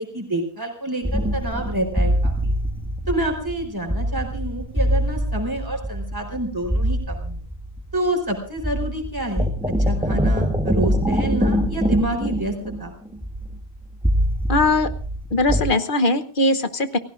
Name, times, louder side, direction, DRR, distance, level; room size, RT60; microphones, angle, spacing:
voice 1, 0.0-2.5 3.1-7.4 7.9-9.5 9.8-12.5 12.8-12.9, right 1 dB, 20° right, 2 dB, 4.2 m, -27 dB
sound 1, 1.0-8.3 8.6-15.6, equal, 5° right, 1.2 m, -24 dB
voice 2, 14.5-14.9 15.3-17.0, left 2 dB, 55° left, 9 dB, 1.1 m, -20 dB
29.0 x 16.5 x 2.5 m, 0.42 s
omnidirectional pair, 1.1 m